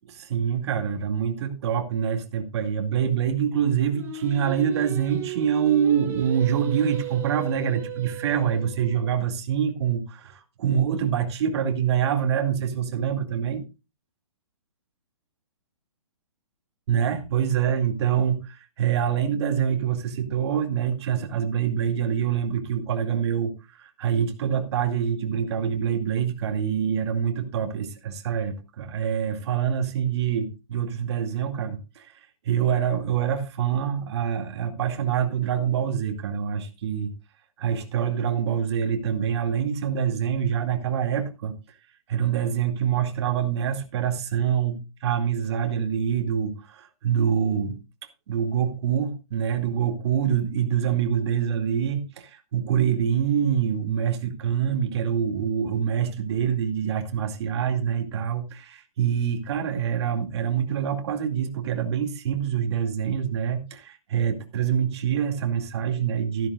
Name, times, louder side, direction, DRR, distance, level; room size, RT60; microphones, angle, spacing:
voice 1, 0.1-13.6 16.9-37.1 37.6-41.5 42.1-47.8 48.3-66.5, right 8 dB, 50° right, 2.3 m, -25 dB
Singing, 3.9-9.1, right 8 dB, 15° right, 4.7 m, -35 dB
14.0 x 13.0 x 2.4 m
hypercardioid pair, 145°, 18 cm